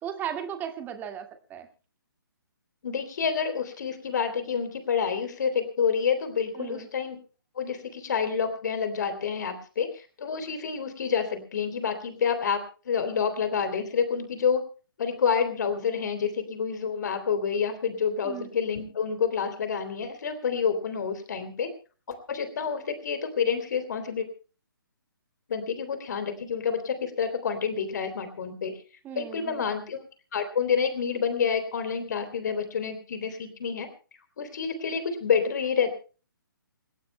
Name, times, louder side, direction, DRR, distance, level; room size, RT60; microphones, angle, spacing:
voice 1, 0.0-1.7 6.5-6.9 18.2-18.5 29.0-29.7, right 9 dB, 15° right, 5 dB, 2.0 m, -36 dB
voice 2, 2.8-7.2 7.5-14.6 15.0-21.7 22.1-24.3 25.5-28.7 29.1-30.0 30.3-33.9 34.4-35.9, left 6 dB, 55° left, 9 dB, 3.3 m, -28 dB
28.0 x 16.0 x 2.2 m, 0.37 s
figure-of-eight pair, 140°, 12 cm